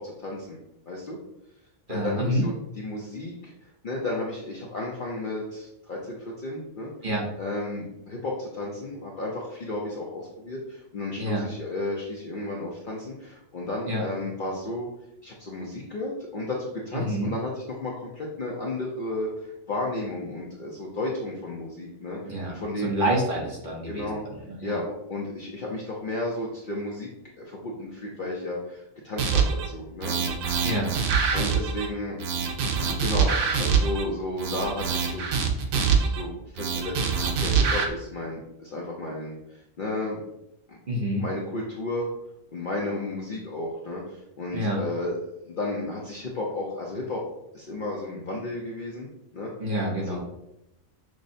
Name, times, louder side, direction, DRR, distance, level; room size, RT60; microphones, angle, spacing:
voice 1, 0.2-0.6 0.9-1.2 1.9-3.3 3.8-5.6 5.9-6.2 6.4-6.9 7.4-10.6 10.9-13.1 13.5-14.9 15.2-17.5 17.8-19.3 19.7-22.2 22.6-22.9 23.9-24.2 24.6-27.1 27.4-27.9 28.2-28.6 29.0-29.4 29.7-30.2 31.3-32.2 33.0-33.3 33.6-35.3 35.7-36.9 37.4-38.4 38.7-39.4 39.8-40.2 41.2-42.1 42.5-44.0 44.4-45.1 45.6-47.2 47.5-49.1 49.3-49.5 50.1-50.2, left 2 dB, 55° left, -3 dB, 0.6 m, -32 dB
voice 2, 1.9-2.4 7.0-7.2 11.2-11.4 13.9-14.0 17.0-17.3 22.3-22.5 22.8-24.1 24.6-24.8 30.6-30.9 40.9-41.2 44.5-44.8 49.6-50.2, equal, 45° right, -3 dB, 0.8 m, -27 dB
sound 1, 29.2-29.7 30.0-31.9 32.2-34.0 34.4-36.2 36.6-37.9, right 6 dB, 85° right, 1.0 m, -25 dB
6.1 x 2.0 x 2.6 m, 0.83 s
omnidirectional pair, 1.4 m